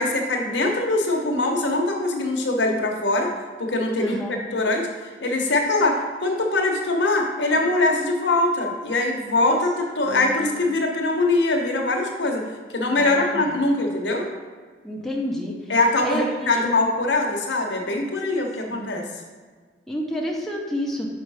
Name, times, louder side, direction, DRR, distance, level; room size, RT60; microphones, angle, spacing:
voice 1, 0.0-3.3 3.6-12.4 12.7-14.3 15.7-19.1, left 2 dB, 75° left, 2 dB, 1.0 m, -22 dB
voice 2, 4.0-4.4 10.1-10.5 13.0-13.6 14.8-15.6 16.0-16.7 18.7-18.9 19.9-21.1, equal, ahead, -2 dB, 0.6 m, -30 dB
5.4 x 5.0 x 4.7 m, 1.5 s
head